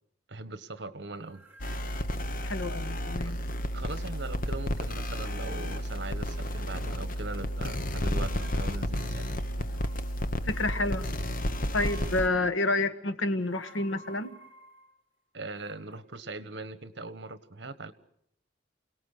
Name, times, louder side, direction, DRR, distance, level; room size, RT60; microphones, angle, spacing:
voice 1, 0.3-1.4 3.7-9.4 15.3-17.9, right 3 dB, 60° right, 13 dB, 1.4 m, -40 dB
sound 1, 1.2-2.3 3.4-4.4 4.7-5.7 6.0-6.6 7.3-7.8 8.4-11.1 11.5-12.4 13.2-15.0 15.6-16.0, right 1 dB, 10° right, 5.3 m, -56 dB
sound 2, 1.6-12.3, equal, 45° left, 1.1 m, -32 dB
voice 2, 2.4-3.4 10.4-11.1 11.7-14.4, left 2 dB, 85° left, 11 dB, 1.5 m, -29 dB
28.5 x 18.5 x 6.6 m, 0.75 s
head